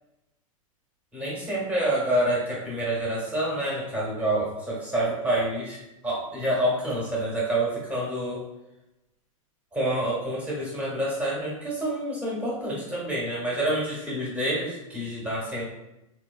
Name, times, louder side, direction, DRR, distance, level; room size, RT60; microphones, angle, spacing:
voice 1, 1.1-8.4 9.7-15.6, right 1 dB, 10° right, -6 dB, 1.0 m, -27 dB
2.8 x 2.2 x 2.3 m, 0.92 s
hypercardioid pair, 115°, 18 cm